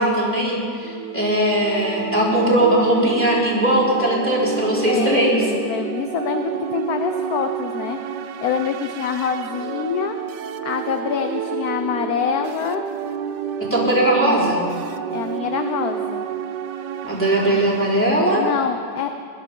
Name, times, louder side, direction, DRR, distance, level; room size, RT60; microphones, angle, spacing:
voice 1, 0.0-5.4 13.7-14.6 17.0-18.5, right 1 dB, 5° left, -6 dB, 3.6 m, -19 dB
sound 1, 0.8-18.1, right 8 dB, 70° right, 1.2 m, -29 dB
voice 2, 4.7-8.0 8.4-10.2 10.6-12.8 15.1-16.3 18.3-19.1, left 7 dB, 65° left, 7 dB, 1.0 m, -25 dB
20.0 x 12.0 x 5.3 m, 2.2 s
omnidirectional pair, 2.0 m